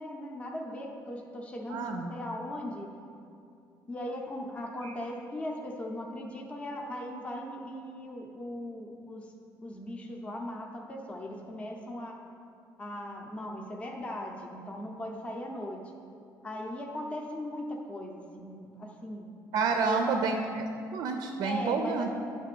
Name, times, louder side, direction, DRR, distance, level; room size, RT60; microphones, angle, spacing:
voice 1, 0.0-2.9 3.9-9.3 9.6-12.2 12.8-15.8 16.4-19.3 19.8-20.1 21.4-22.1, left 1 dB, 15° left, 0 dB, 0.6 m, -38 dB
voice 2, 1.7-2.1 4.8-4.9 19.5-20.6 20.9-22.1, right 4 dB, 65° right, 5 dB, 0.5 m, -29 dB
9.5 x 3.2 x 6.8 m, 2.5 s
cardioid pair, 165°, 7 cm